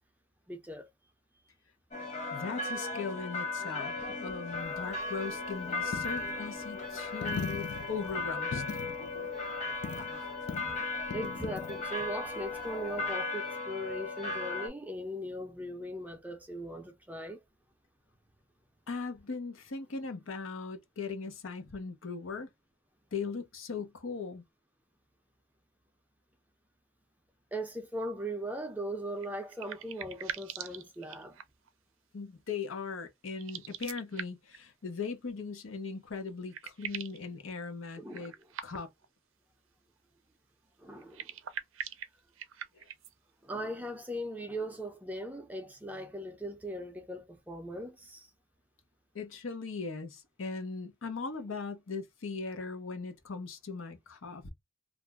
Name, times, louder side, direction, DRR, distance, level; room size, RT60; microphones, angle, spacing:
voice 1, 0.5-0.9 10.7-10.8 11.1-17.4 27.5-31.4 38.0-38.3 40.8-41.3 43.4-48.3, right 1 dB, 10° right, 0.4 m, -39 dB
sound 1, 1.9-14.7, left 3 dB, 35° left, 0.9 m, -36 dB
voice 2, 2.3-8.6 18.9-22.5 23.1-24.4 32.1-38.3 38.6-38.9 49.1-54.5, left 4 dB, 90° left, 0.7 m, -39 dB
Coin (dropping), 4.6-13.1, left 5 dB, 55° left, 0.3 m, -43 dB
sound 2, 29.2-31.7 33.3-34.6 35.9-36.0 36.3-37.2 38.1-39.1 41.0-43.1, right 9 dB, 85° right, 0.5 m, -42 dB
2.5 x 2.1 x 3.4 m
head